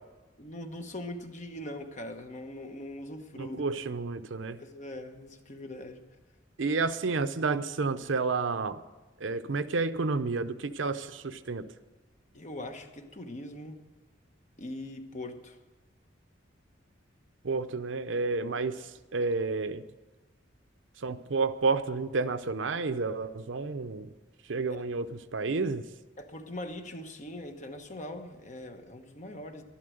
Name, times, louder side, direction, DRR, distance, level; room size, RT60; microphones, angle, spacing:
voice 1, 0.4-3.6 4.6-6.0 12.3-13.8 14.6-15.6 24.7-24.9 26.2-29.6, left 1 dB, 40° left, 6 dB, 1.1 m, -41 dB
voice 2, 3.4-4.6 6.6-8.8 9.2-11.6 17.4-18.7 19.1-19.8 21.0-24.1 24.5-25.1 25.3-25.8, right 4 dB, 75° right, 11 dB, 0.7 m, -30 dB
12.0 x 11.5 x 7.8 m, 1.2 s
head